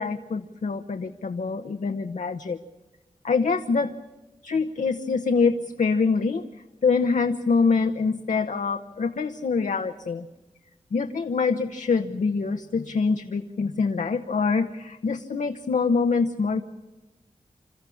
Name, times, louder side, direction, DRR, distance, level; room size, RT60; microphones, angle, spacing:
voice 1, 0.0-2.6 3.2-3.9 4.4-6.4 6.8-10.3 10.9-16.6, left 4 dB, 80° left, 6 dB, 1.0 m, -25 dB
27.5 x 14.0 x 8.5 m, 1.1 s
wide cardioid pair, 60°, 13 cm